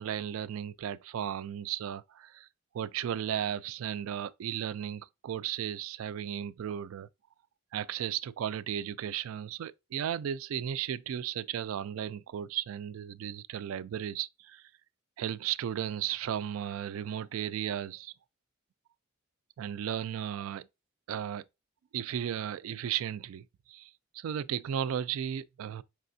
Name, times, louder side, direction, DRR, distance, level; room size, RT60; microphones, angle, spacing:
voice 1, 0.0-2.5 2.7-7.1 7.7-14.6 15.2-18.1 19.6-20.7 21.1-21.4 21.9-25.8, right 9 dB, 80° right, 0.3 m, -35 dB
4.8 x 3.3 x 2.6 m
head